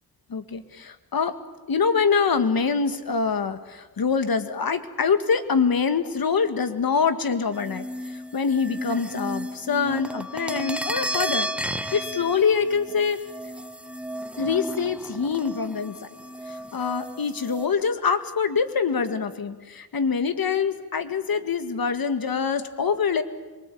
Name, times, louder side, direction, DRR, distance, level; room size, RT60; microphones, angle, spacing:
voice 1, 0.3-1.3 1.7-7.9 8.3-11.5 11.9-13.2 14.4-16.0 16.5-23.2, left 5 dB, 65° left, 9 dB, 2.0 m, -24 dB
sound 1, 7.5-17.7, equal, 5° right, 1.4 m, -33 dB
26.0 x 23.5 x 8.6 m, 1.3 s
wide cardioid pair, 95°, 38 cm